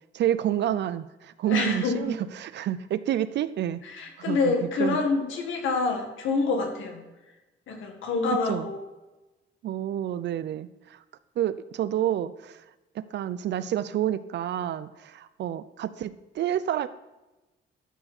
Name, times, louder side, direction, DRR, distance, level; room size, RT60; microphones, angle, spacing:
voice 1, 0.1-3.8 4.2-5.0 8.5-8.7 9.6-11.0 11.4-12.6 12.9-16.9, right 11 dB, 60° right, 15 dB, 0.5 m, -29 dB
voice 2, 1.5-2.1 3.9-7.0 7.7-8.8, left 4 dB, 75° left, 2 dB, 1.8 m, -27 dB
12.0 x 4.5 x 4.3 m, 1.1 s
cardioid pair, 90°, 20 cm